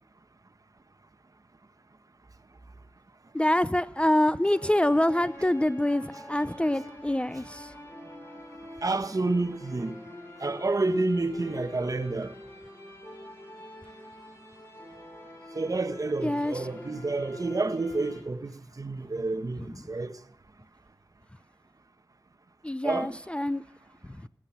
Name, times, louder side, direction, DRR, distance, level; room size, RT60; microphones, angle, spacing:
voice 1, 3.3-7.7 16.2-16.6 22.6-23.6, left 1 dB, 15° left, 0.6 m, -25 dB
sound 1, 4.4-18.2, left 1 dB, 35° left, 7.8 m, -46 dB
voice 2, 8.8-10.0 10.4-12.3 15.5-20.2 22.8-23.2, right 3 dB, 50° right, 1.4 m, -29 dB
16.0 x 13.5 x 5.8 m
wide cardioid pair, 55°, 8 cm